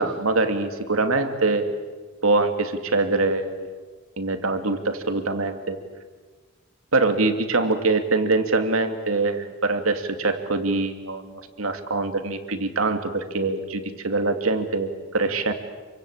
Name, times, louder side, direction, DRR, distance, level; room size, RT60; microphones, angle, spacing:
voice 1, 0.0-1.7 2.2-3.7 4.2-5.8 6.9-15.5, right 3 dB, 85° right, 6 dB, 2.5 m, -24 dB
27.5 x 25.0 x 8.6 m, 1.4 s
head